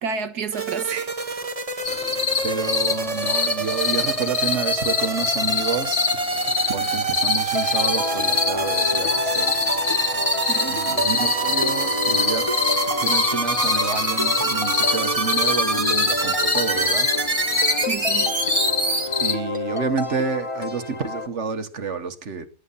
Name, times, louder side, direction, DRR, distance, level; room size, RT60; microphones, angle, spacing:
voice 1, 0.0-1.1 1.9-2.1 10.5-10.8 17.9-18.3, right 6 dB, 85° right, 1.8 m, -30 dB
sound 1, 0.5-19.1, right 3 dB, 25° right, 1.2 m, -26 dB
sound 2, 1.8-19.3, left 5 dB, 45° left, 1.6 m, -25 dB
voice 2, 2.4-6.1 6.7-9.6 10.6-12.5 13.0-17.1 19.2-22.5, right 5 dB, 50° right, 1.5 m, -29 dB
sound 3, 7.5-21.3, left 1 dB, 20° left, 1.5 m, -30 dB
18.5 x 10.5 x 5.6 m
omnidirectional pair, 1.6 m